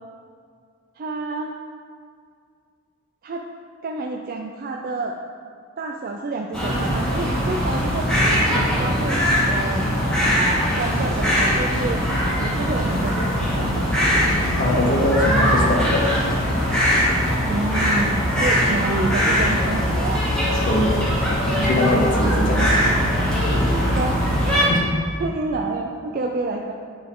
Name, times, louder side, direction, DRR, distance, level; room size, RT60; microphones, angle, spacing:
voice 1, 1.0-1.5 3.2-3.5 3.8-5.2 5.8-8.1 8.5-9.2 9.5-9.8 10.8-12.0 12.4-13.9 17.5-20.2 22.3-22.6 23.9-24.3 25.2-26.7, right 3 dB, 45° right, 2 dB, 0.4 m, -28 dB
sound 1, 6.5-24.7, equal, 5° left, 1.6 m, -21 dB
voice 2, 14.6-16.2 20.7-20.9 21.5-22.9 24.7-24.9, left 1 dB, 40° left, -2 dB, 0.9 m, -22 dB
9.4 x 4.0 x 3.8 m, 2.2 s
head